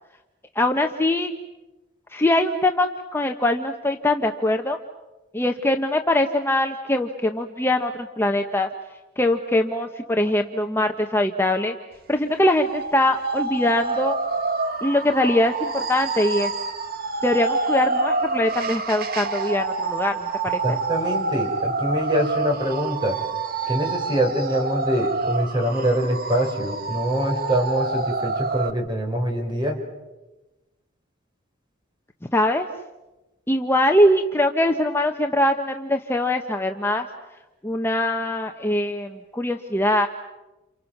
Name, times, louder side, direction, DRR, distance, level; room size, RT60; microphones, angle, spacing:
voice 1, 0.5-1.3 2.1-4.8 5.3-8.7 9.2-11.7 12.1-14.2 14.8-16.5 17.2-20.8 32.3-32.7 33.5-37.1 37.6-40.1, left 1 dB, 10° left, 4 dB, 1.0 m, -22 dB
sound 1, 12.6-28.7, right 3 dB, 50° right, 1.6 m, -27 dB
voice 2, 20.6-23.2 23.7-29.8, equal, 25° right, 2 dB, 5.5 m, -24 dB
29.5 x 29.5 x 6.0 m, 1.1 s
head